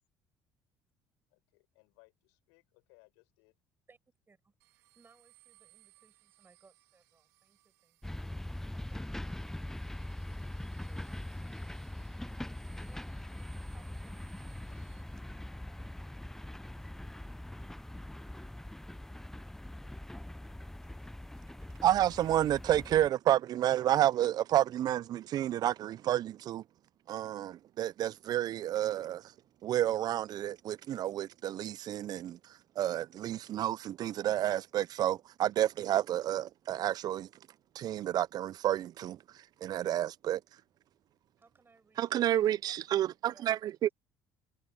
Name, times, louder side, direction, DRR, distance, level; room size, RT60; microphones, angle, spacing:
voice 1, 1.3-3.6, left 35 dB, 90° left, 5.7 m, -65 dB
voice 2, 4.3-8.2 8.7-10.4 10.9-11.8 12.1-16.0 16.6-17.1 41.4-43.9, right 4 dB, 25° right, 7.9 m, -67 dB
sound 1, 4.6-15.0, right 22 dB, 90° right, 2.4 m, -67 dB
sound 2, 8.0-23.1, left 1 dB, 5° left, 0.5 m, -42 dB
voice 3, 21.8-26.6 27.1-29.2 29.6-32.4 32.8-37.3 37.8-39.2 39.6-40.4 42.0-43.9, right 12 dB, 55° right, 0.4 m, -30 dB
supercardioid pair, 80°, 8 cm